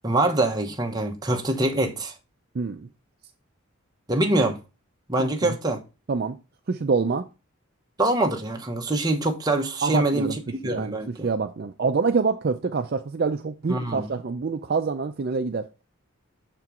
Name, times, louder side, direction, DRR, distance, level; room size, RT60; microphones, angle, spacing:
voice 1, 0.0-2.1 4.1-4.6 5.1-5.8 8.0-11.3 13.7-14.1, right 2 dB, 15° right, 0.9 m, -24 dB
voice 2, 2.5-2.9 5.2-5.6 6.1-6.4 6.7-7.3 9.8-10.4 10.6-11.0 11.2-15.7, right 4 dB, 45° right, 0.4 m, -26 dB
6.8 x 4.5 x 3.6 m
head